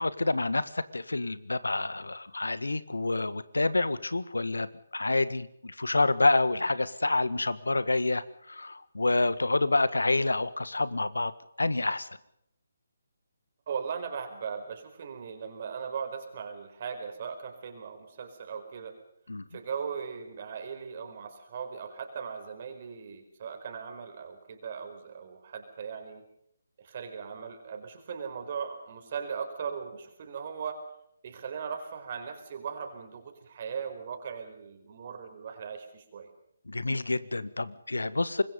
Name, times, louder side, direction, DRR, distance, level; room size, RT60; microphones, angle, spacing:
voice 1, 0.0-11.3 11.6-12.1 19.3-19.4 36.7-38.4, left 2 dB, 80° left, 15 dB, 1.7 m, -28 dB
voice 2, 13.7-19.0 19.5-26.2 26.8-30.8 31.2-36.3, right 6 dB, 40° right, 5 dB, 4.7 m, -38 dB
25.5 x 21.5 x 5.4 m, 0.74 s
figure-of-eight pair, 145°, 0 cm